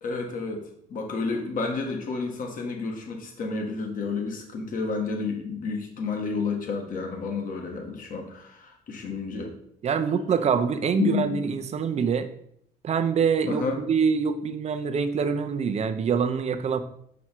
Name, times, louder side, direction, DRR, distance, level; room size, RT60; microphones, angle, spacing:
voice 1, 0.0-9.5 11.0-11.5 13.5-13.8, left 4 dB, 50° left, 2 dB, 1.6 m, -30 dB
voice 2, 9.8-12.3 12.8-16.8, right 6 dB, 40° right, 9 dB, 0.7 m, -25 dB
6.1 x 5.5 x 4.5 m, 0.69 s
cardioid pair, 110°, 17 cm